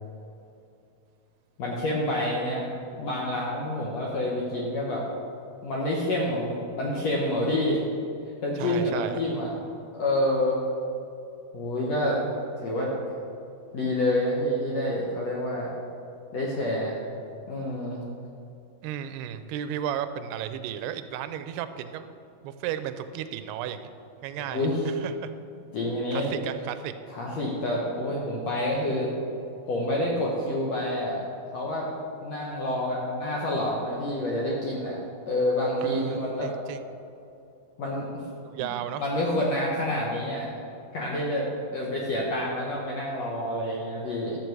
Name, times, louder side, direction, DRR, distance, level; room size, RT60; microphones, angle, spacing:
voice 1, 1.6-2.7 3.0-5.0 5.6-7.8 8.4-9.5 9.9-10.6 11.5-12.2 12.6-13.1 13.7-15.7 16.3-17.0 17.5-18.0 24.5-24.9 25.7-26.3 27.1-29.1 29.7-31.2 31.5-31.9 32.2-35.0 35.3-36.5 37.8-38.3 38.6-38.7 39.0-40.5 40.9-44.4, left 1 dB, 70° left, -4 dB, 1.7 m, -28 dB
voice 2, 8.6-9.2 18.8-22.1 22.4-23.9 24.2-25.3 26.1-26.9 35.8-36.8 38.4-39.0, right 10 dB, 85° right, 11 dB, 2.6 m, -34 dB
12.5 x 7.5 x 4.6 m, 2.6 s
omnidirectional pair, 4.5 m